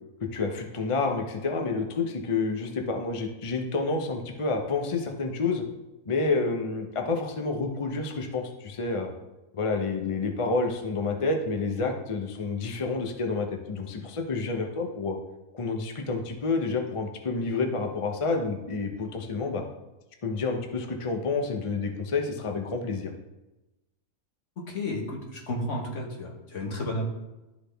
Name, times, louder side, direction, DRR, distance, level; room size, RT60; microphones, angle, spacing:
voice 1, 0.2-5.6 6.1-9.1 9.5-15.2 15.5-19.6 20.2-23.1, left 3 dB, 35° left, 3 dB, 0.5 m, -29 dB
voice 2, 24.6-27.1, left 1 dB, 60° left, -1 dB, 1.7 m, -32 dB
12.0 x 4.0 x 3.4 m, 1.0 s
omnidirectional pair, 1.5 m